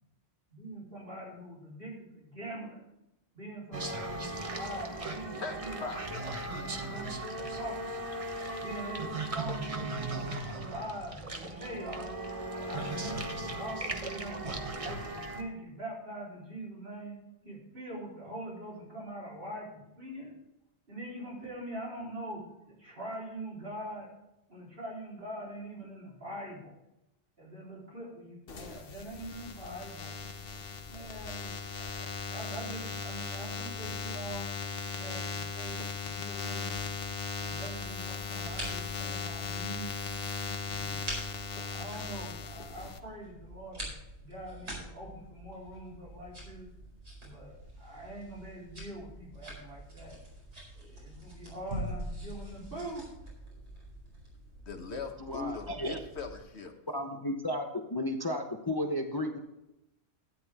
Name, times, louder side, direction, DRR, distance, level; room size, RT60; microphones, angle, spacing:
voice 1, 0.5-2.8 3.3-5.9 6.4-8.1 8.6-12.1 12.6-14.4 14.7-17.2 17.4-20.3 20.9-24.1 24.5-26.7 27.4-30.2 30.9-34.5 35.0-36.7 37.4-39.9 40.6-41.1 41.4-43.9 44.2-46.7 47.2-50.2 50.7-53.0, right 1 dB, 55° right, -4 dB, 3.9 m, -43 dB
sound 1, 3.7-15.4, right 2 dB, 30° right, 1.1 m, -37 dB
voice 2, 5.4-6.0 54.7-56.7, left 4 dB, 75° left, 5 dB, 1.5 m, -40 dB
sound 2, 28.5-43.0, left 5 dB, 60° left, 1.1 m, -38 dB
sound 3, 36.7-56.4, right 1 dB, 75° right, 5.0 m, -45 dB
voice 3, 55.2-56.0 56.9-57.6 57.9-59.4, left 1 dB, 25° left, 3 dB, 0.8 m, -33 dB
12.5 x 10.0 x 3.5 m, 0.90 s
omnidirectional pair, 1.1 m